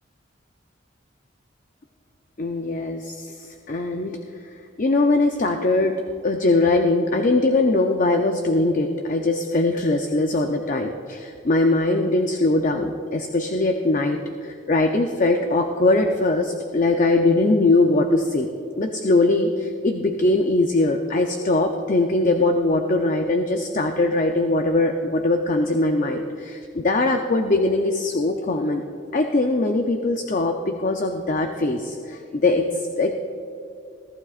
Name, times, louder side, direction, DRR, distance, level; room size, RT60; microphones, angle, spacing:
voice 1, 2.4-4.2 4.8-18.5 18.8-28.8 29.1-33.2, left 2 dB, 40° left, 4 dB, 0.6 m, -21 dB
22.5 x 14.5 x 2.5 m, 2.6 s
head